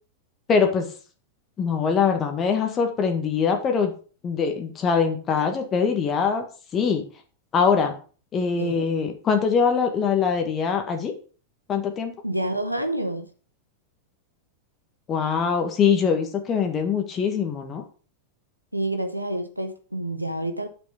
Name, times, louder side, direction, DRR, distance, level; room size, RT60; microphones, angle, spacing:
voice 1, 0.5-0.9 1.6-3.9 4.2-6.4 6.7-7.0 7.5-7.9 8.3-11.1 11.7-12.1 15.1-17.8, left 6 dB, 25° left, 1.6 m, -23 dB
voice 2, 8.6-8.9 12.2-13.3 18.7-20.7, right 1 dB, 90° right, 1.1 m, -28 dB
8.6 x 7.0 x 5.0 m
figure-of-eight pair, 90°, 0 cm